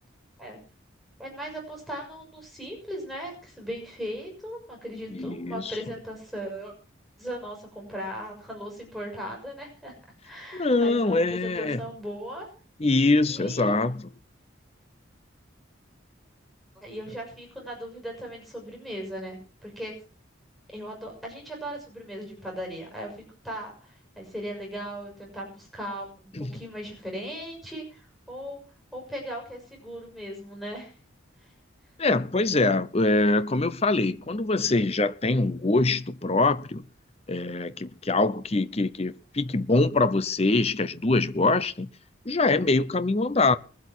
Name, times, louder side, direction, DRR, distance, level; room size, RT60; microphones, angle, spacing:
voice 1, 1.2-6.7 7.2-9.9 10.2-12.5 13.2-13.7 16.7-19.9 20.7-28.6 28.9-30.9, equal, ahead, 6.3 m, -38 dB
voice 2, 5.1-5.8 10.5-11.8 12.8-14.1 26.4-26.5 32.0-36.8 37.3-41.9 42.3-43.6, left 2 dB, 30° left, 0.7 m, -24 dB
22.0 x 8.2 x 6.2 m
head